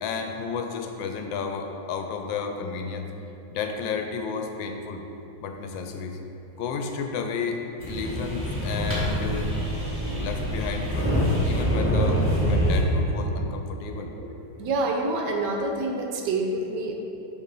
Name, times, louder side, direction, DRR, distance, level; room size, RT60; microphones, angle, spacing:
voice 1, 0.0-3.1 3.5-5.0 5.4-6.2 6.6-9.5 10.1-11.1 11.4-14.1, left 5 dB, 85° left, 4 dB, 1.3 m, -32 dB
sound 1, 7.8-12.8, equal, 10° right, 0.8 m, -25 dB
voice 2, 14.6-16.9, right 2 dB, 70° right, 2 dB, 1.2 m, -27 dB
6.5 x 3.3 x 5.3 m, 2.9 s
omnidirectional pair, 2.0 m